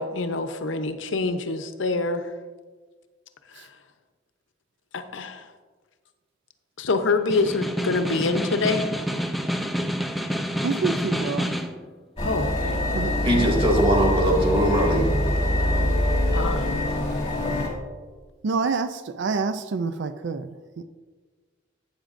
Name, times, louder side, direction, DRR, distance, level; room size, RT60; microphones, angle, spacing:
voice 1, 0.0-2.3 3.5-3.7 4.9-5.5 6.8-8.9 12.2-12.8 16.3-16.7, left 3 dB, 80° left, 9 dB, 0.7 m, -26 dB
Snare drum, 7.2-11.8, equal, ahead, 0.5 m, -28 dB
voice 2, 10.6-11.5 12.9-13.5 18.4-20.5 20.8-20.9, right 4 dB, 65° right, 11 dB, 0.4 m, -27 dB
sound 1, 12.2-17.7, left 1 dB, 30° left, 2.4 m, -24 dB
voice 3, 13.2-15.1, equal, 30° right, -2 dB, 2.1 m, -21 dB
12.0 x 8.9 x 2.6 m, 1.4 s
head